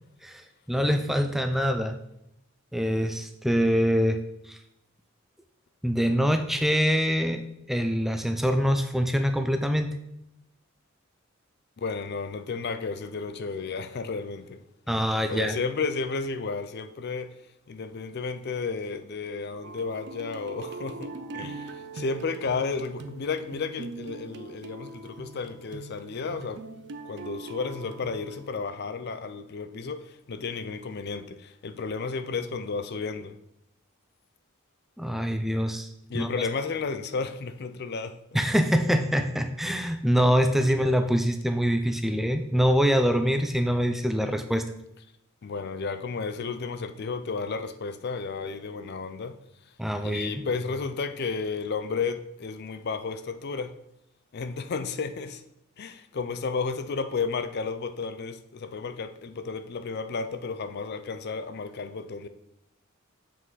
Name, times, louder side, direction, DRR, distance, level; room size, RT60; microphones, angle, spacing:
voice 1, 0.7-2.0 2.7-4.2 4.5-4.6 5.8-10.0 14.9-15.6 35.0-35.9 36.1-36.3 38.3-44.7 49.8-50.3, equal, ahead, 0.4 m, -24 dB
voice 2, 11.8-14.6 14.9-17.3 17.7-26.7 27.0-33.4 36.1-38.2 45.4-49.4 50.0-53.8 54.3-55.4 55.8-62.3, left 4 dB, 50° left, 0.5 m, -32 dB
sound 1, 19.6-28.5, right 3 dB, 55° right, 0.5 m, -41 dB
7.4 x 6.0 x 4.0 m
head